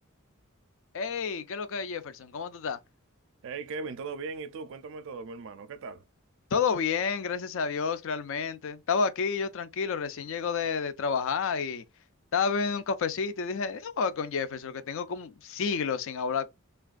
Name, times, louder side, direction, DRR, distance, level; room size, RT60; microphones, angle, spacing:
voice 1, 0.9-2.8 6.5-11.8 12.3-16.5, left 5 dB, 60° left, 0.4 m, -30 dB
voice 2, 3.4-6.1, right 4 dB, 60° right, 0.4 m, -38 dB
3.3 x 2.4 x 2.4 m
head